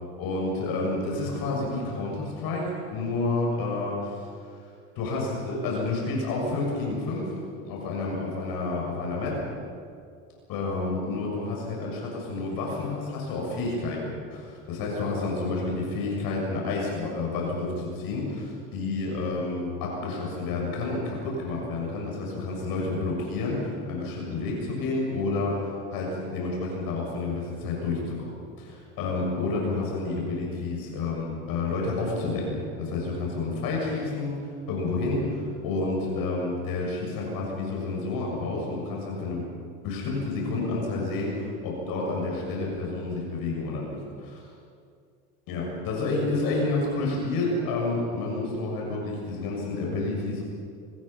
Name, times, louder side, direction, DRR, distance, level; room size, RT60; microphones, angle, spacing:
voice 1, 0.2-4.3 5.0-9.4 10.5-34.4 34.7-39.4 39.8-44.5 45.5-50.4, left 3 dB, 55° left, -2 dB, 7.2 m, -29 dB
26.5 x 20.0 x 6.0 m, 2.3 s
hypercardioid pair, 85°, 42 cm